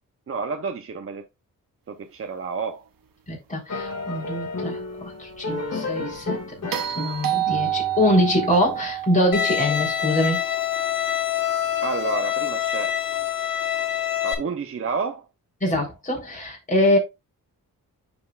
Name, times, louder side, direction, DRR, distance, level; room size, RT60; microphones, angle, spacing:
voice 1, 0.3-1.3 1.9-2.8 11.8-13.0 14.2-15.2, right 5 dB, 40° right, 0.7 m, -30 dB
voice 2, 3.3-6.4 6.6-10.4 15.6-17.0, left 1 dB, 20° left, 3.7 m, -24 dB
sound 1, 3.7-9.0, left 3 dB, 45° left, 2.0 m, -33 dB
sound 2, 6.7-11.0 13.2-13.3, right 13 dB, 75° right, 0.9 m, -29 dB
Bowed string instrument, 9.3-14.3, left 10 dB, 75° left, 1.4 m, -25 dB
11.0 x 4.3 x 2.4 m
wide cardioid pair, 130°, 35 cm